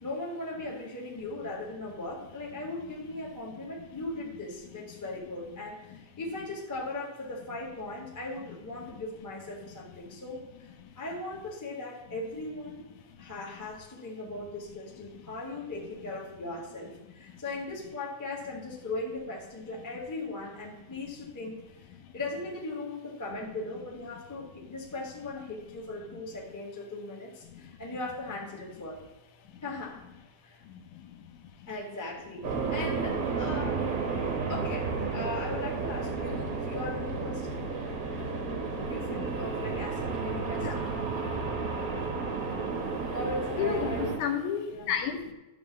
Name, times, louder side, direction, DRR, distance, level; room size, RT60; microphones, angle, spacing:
voice 1, 0.0-12.8 13.2-21.6 22.1-29.0 29.6-30.0 30.4-30.6 31.7-33.9 34.5-37.7 38.9-40.9 43.1-44.2 44.7-44.9, left 2 dB, 15° left, -2 dB, 0.7 m, -38 dB
sound 1, 32.4-44.2, right 4 dB, 60° right, 0.9 m, -32 dB
voice 2, 43.6-45.3, left 7 dB, 80° left, 5 dB, 2.3 m, -31 dB
10.5 x 3.9 x 7.2 m, 1.1 s
omnidirectional pair, 3.5 m